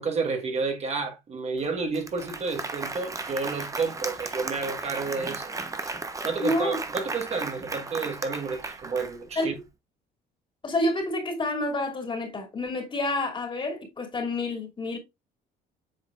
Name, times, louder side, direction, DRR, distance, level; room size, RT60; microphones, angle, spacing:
voice 1, 0.0-5.5 5.8-5.9 6.2-9.5, right 4 dB, 40° right, 1.6 m, -30 dB
Applause, 1.6-1.7 1.9-9.5, right 3 dB, 20° right, 0.9 m, -35 dB
voice 2, 6.4-6.8 9.4-9.6 10.6-15.0, left 2 dB, 30° left, 2.7 m, -28 dB
7.8 x 4.9 x 2.4 m
cardioid pair, 110°, 17 cm